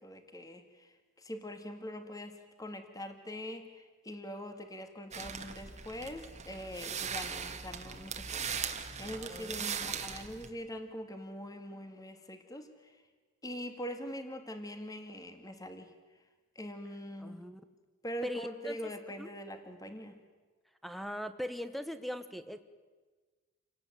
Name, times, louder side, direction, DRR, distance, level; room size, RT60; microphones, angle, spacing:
voice 1, 0.0-8.6 9.0-13.0 13.4-15.9 16.6-17.4 18.0-20.2, equal, 15° left, 7 dB, 2.1 m, -43 dB
sound 1, 5.1-10.5, right 7 dB, 35° right, 1.7 m, -39 dB
voice 2, 9.1-9.9 17.2-17.6 18.2-18.8 19.2-19.3 20.8-22.6, equal, ahead, 11 dB, 1.2 m, -40 dB
28.0 x 18.0 x 9.3 m, 1.4 s
head